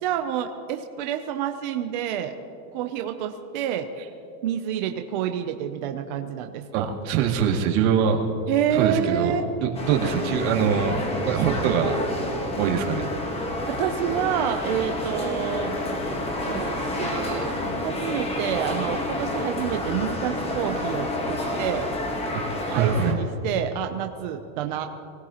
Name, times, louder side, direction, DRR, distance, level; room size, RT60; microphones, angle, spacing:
voice 1, 0.0-2.3 2.7-3.9 4.4-6.9 8.5-9.4 13.7-15.7 16.4-17.5 17.8-21.8 22.7-24.9, right 10 dB, 30° right, 5 dB, 0.4 m, -28 dB
voice 2, 6.7-8.2 8.7-9.3 9.6-12.0 12.6-13.3 22.3-22.4 22.7-23.1, right 7 dB, 55° right, 1 dB, 2.3 m, -23 dB
sound 1, 9.7-23.1, left 1 dB, 10° left, 1.1 m, -29 dB
24.5 x 17.5 x 2.9 m, 2.6 s
supercardioid pair, 165°, 49 cm